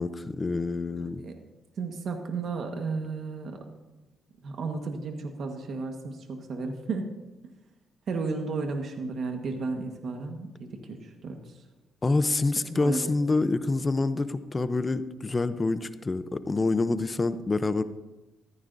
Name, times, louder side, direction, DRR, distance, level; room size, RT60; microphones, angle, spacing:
voice 1, 0.0-1.2 12.0-17.8, left 3 dB, 25° left, 12 dB, 0.7 m, -27 dB
voice 2, 0.9-1.3 1.8-3.6 4.4-7.1 8.1-11.6 12.8-13.0, right 4 dB, 60° right, 3 dB, 1.4 m, -33 dB
14.5 x 14.5 x 2.7 m, 1.0 s
cardioid pair, 90°, 0 cm